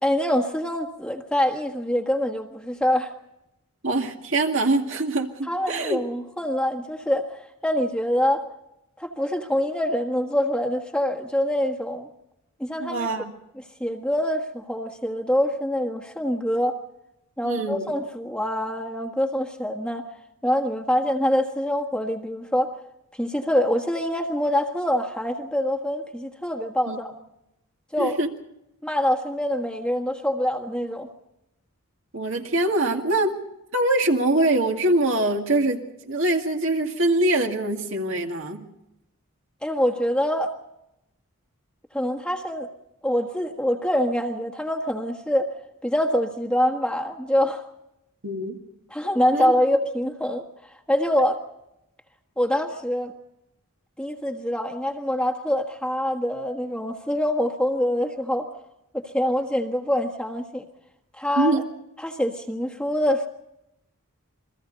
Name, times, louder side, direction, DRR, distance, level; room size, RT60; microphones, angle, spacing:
voice 1, 0.0-3.1 5.5-8.5 9.0-12.1 12.6-13.1 13.8-16.8 17.4-20.0 20.4-22.7 23.2-27.1 27.9-28.2 28.8-31.1 39.6-40.5 41.9-42.7 43.0-45.5 45.8-47.6 48.9-50.4 50.9-51.4 52.4-53.1 54.0-58.5 58.9-60.7 61.1-61.6 62.0-63.3, equal, 5° left, 2 dB, 1.5 m, -25 dB
voice 2, 3.8-6.0 12.8-13.3 17.4-17.9 26.9-27.0 28.0-28.3 32.1-33.3 33.7-38.6 48.2-48.6 49.3-49.5 61.4-61.7, right 2 dB, 60° right, 3 dB, 2.2 m, -23 dB
29.0 x 22.5 x 4.1 m, 0.87 s
head